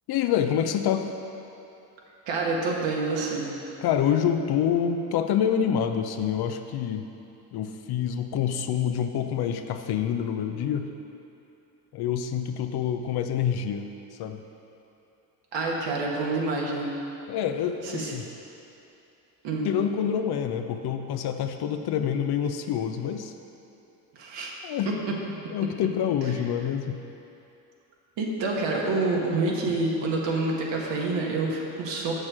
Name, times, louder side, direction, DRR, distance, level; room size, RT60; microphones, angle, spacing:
voice 1, 0.1-1.1 3.8-7.0 7.5-10.9 11.9-13.9 14.2-14.4 17.3-18.2 19.6-23.3 24.6-25.0 25.5-27.0, left 8 dB, 55° left, 7 dB, 0.7 m, -27 dB
voice 2, 2.3-3.5 15.5-16.9 17.8-18.1 19.4-19.7 24.1-24.6 28.2-32.1, right 3 dB, 65° right, -2 dB, 1.6 m, -27 dB
7.2 x 6.5 x 4.9 m, 2.8 s
hypercardioid pair, 65°, 47 cm